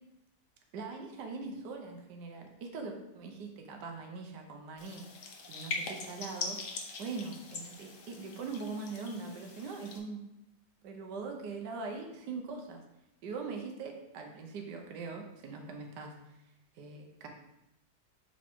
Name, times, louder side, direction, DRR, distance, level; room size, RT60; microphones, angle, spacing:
voice 1, 0.7-5.0 5.5-6.6 7.0-10.2 10.8-12.8 13.2-16.1 16.7-17.3, right 4 dB, 80° right, 3 dB, 1.5 m, -41 dB
sound 1, 4.8-10.0, left 3 dB, 55° left, 1.2 m, -42 dB
7.1 x 5.1 x 3.6 m, 0.88 s
omnidirectional pair, 1.8 m